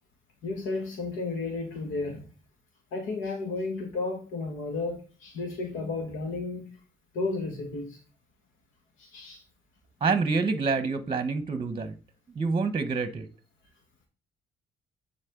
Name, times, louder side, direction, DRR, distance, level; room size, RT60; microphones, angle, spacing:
voice 1, 0.4-2.3 2.9-6.7 7.1-8.0 9.0-9.4, left 3 dB, 80° left, 2 dB, 1.7 m, -33 dB
voice 2, 10.0-11.9 12.3-13.3, right 4 dB, 25° right, 11 dB, 0.9 m, -27 dB
9.7 x 4.1 x 3.7 m, 0.35 s
cardioid pair, 90°, 20 cm